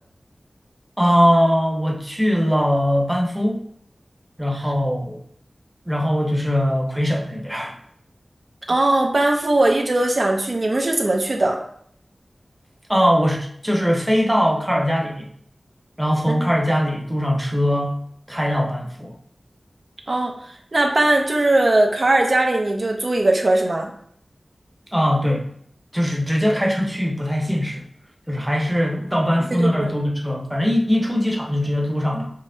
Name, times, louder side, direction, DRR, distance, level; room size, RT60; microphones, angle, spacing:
voice 1, 1.0-3.6 4.4-5.2 5.9-7.8 12.9-15.3 16.0-18.0 18.3-19.1 24.9-25.5 25.9-27.8 28.3-32.3, equal, 5° right, 0 dB, 0.8 m, -21 dB
voice 2, 8.7-11.6 16.3-16.5 20.1-23.9 29.5-29.9, right 2 dB, 50° right, 1 dB, 0.6 m, -19 dB
5.4 x 3.2 x 2.7 m, 0.64 s
wide cardioid pair, 80°, 0 cm